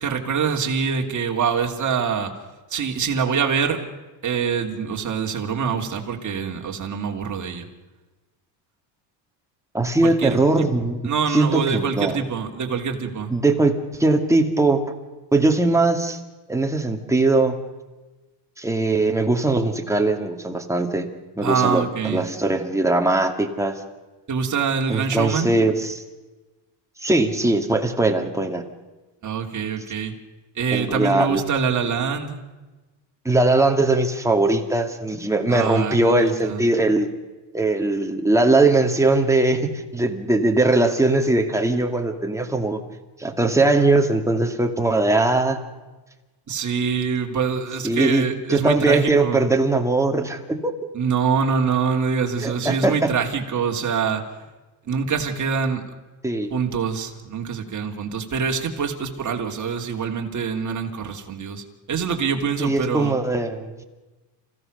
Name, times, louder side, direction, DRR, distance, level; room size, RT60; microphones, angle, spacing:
voice 1, 0.0-2.3 2.7-3.8 4.2-7.7 10.0-10.4 11.1-13.3 21.4-22.2 24.3-25.5 29.2-30.1 30.6-32.4 35.5-36.6 46.5-49.4 50.9-54.2 54.9-55.8 56.5-63.1, right 6 dB, 35° right, 2 dB, 3.1 m, -25 dB
voice 2, 9.7-12.2 13.3-13.7 14.0-14.8 15.3-16.2 16.5-17.6 18.6-21.1 21.4-23.8 24.9-26.0 27.0-28.6 30.7-31.4 33.2-37.1 37.5-42.8 43.2-45.6 47.8-50.7 52.4-53.1 56.2-56.5 62.6-63.8, right 2 dB, 5° right, 3 dB, 2.2 m, -20 dB
28.0 x 16.5 x 6.7 m, 1.2 s
cardioid pair, 115°, 50 cm